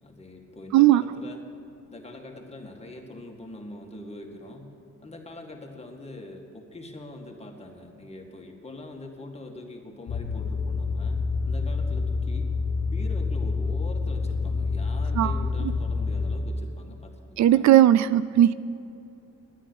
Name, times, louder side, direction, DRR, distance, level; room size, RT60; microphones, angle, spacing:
voice 1, 0.0-1.4 1.9-4.7 5.0-12.5 12.9-17.6, left 2 dB, 20° left, 1 dB, 2.0 m, -43 dB
sound 1, 10.1-16.4, left 4 dB, 55° left, 1.2 m, -27 dB
voice 2, 17.4-18.5, right 12 dB, 65° right, 16 dB, 0.4 m, -17 dB
10.5 x 9.8 x 9.9 m, 2.7 s
cardioid pair, 90°, 30 cm